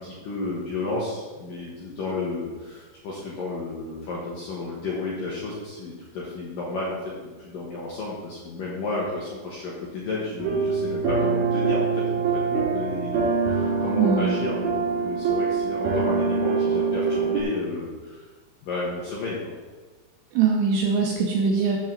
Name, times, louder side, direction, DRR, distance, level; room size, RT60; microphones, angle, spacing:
voice 1, 0.0-18.2 18.6-19.5, left 2 dB, 70° left, -5 dB, 2.1 m, -32 dB
sound 1, 10.4-17.4, right 5 dB, 60° right, 4.0 m, -24 dB
voice 2, 14.0-14.4 20.4-21.8, right 5 dB, 85° right, 0 dB, 2.5 m, -22 dB
7.6 x 5.6 x 7.2 m, 1.3 s
omnidirectional pair, 5.7 m